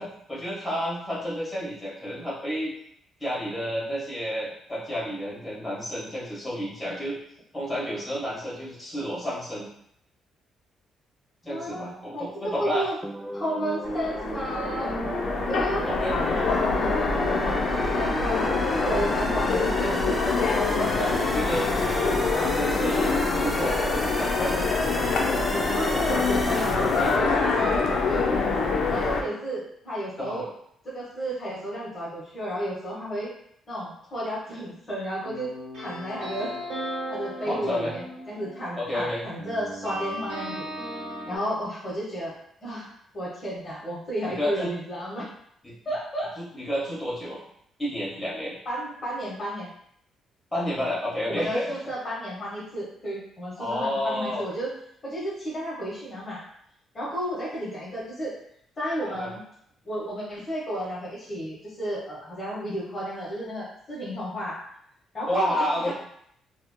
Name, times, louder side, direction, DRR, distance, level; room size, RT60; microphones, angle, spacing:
voice 1, 0.0-2.7 3.2-7.2 7.5-9.7 11.4-12.9 15.8-16.5 21.1-24.6 27.0-27.1 30.2-30.4 37.5-37.9 38.8-39.2 44.4-44.8 45.6-45.7 46.4-47.4 47.8-48.5 50.5-51.8 53.6-54.4 59.0-59.3 65.3-65.9, equal, 10° left, -8 dB, 1.3 m, -30 dB
voice 2, 11.5-13.0 13.3-14.9 15.5-17.1 17.7-20.2 20.8-21.1 25.7-28.3 28.9-30.5 30.8-33.3 33.7-36.5 37.1-40.6 41.3-42.3 42.6-42.9 43.1-45.2 45.8-46.3 48.6-49.7 51.3-54.7 55.0-56.4 56.9-58.3 58.8-59.4 59.8-64.6 65.1-65.9, equal, 40° left, -7 dB, 1.0 m, -32 dB
sound 1, 13.0-27.2, right 1 dB, 10° right, 0.4 m, -33 dB
Train, 13.8-29.2, left 4 dB, 75° left, 0.4 m, -25 dB
sound 2, 35.2-39.0 39.4-41.4, equal, 85° right, 1.1 m, -36 dB
3.2 x 2.1 x 2.2 m, 0.70 s
cardioid pair, 90°, 0 cm